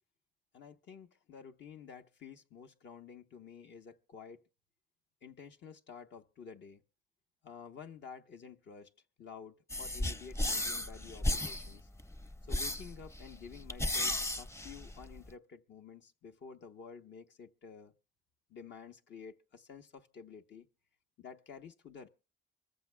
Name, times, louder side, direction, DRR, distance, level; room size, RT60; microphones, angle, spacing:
voice 1, 0.5-4.4 5.2-6.8 7.4-8.9 9.2-11.9 12.5-17.9 18.5-20.7 21.2-22.1, left 6 dB, 65° left, 1.1 m, -51 dB
sound 1, 9.7-15.3, left 1 dB, 15° left, 0.6 m, -35 dB
25.0 x 14.5 x 2.3 m
cardioid pair, 90°, 20 cm